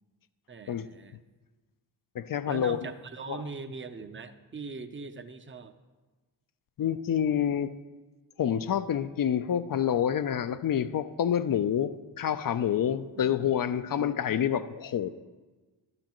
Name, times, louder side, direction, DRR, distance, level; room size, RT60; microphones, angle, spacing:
voice 1, 0.5-1.2 2.5-5.7 13.1-13.4 13.7-14.2, right 4 dB, 25° right, 9 dB, 0.6 m, -41 dB
voice 2, 2.1-2.8 3.3-3.4 6.8-7.7 8.4-15.1, left 9 dB, 45° left, 12 dB, 0.5 m, -28 dB
12.0 x 7.7 x 3.0 m, 1.3 s
supercardioid pair, 40°, 50 cm